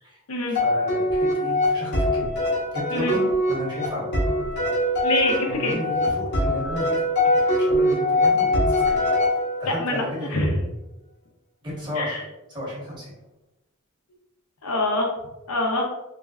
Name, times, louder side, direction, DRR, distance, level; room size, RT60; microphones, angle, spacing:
sound 1, 0.5-9.8, left 1 dB, 50° left, 1.0 m, -23 dB
voice 1, 0.6-2.3 2.7-4.1 4.5-4.7 5.5-7.0 7.6-8.9 9.6-10.4 11.6-12.2 12.5-13.1, equal, 20° right, -5 dB, 1.0 m, -33 dB
voice 2, 5.0-5.8 9.7-10.5 12.0-12.2 14.6-15.1 15.5-15.9, left 2 dB, 85° left, 1 dB, 0.7 m, -25 dB
3.2 x 2.5 x 2.3 m, 0.96 s
head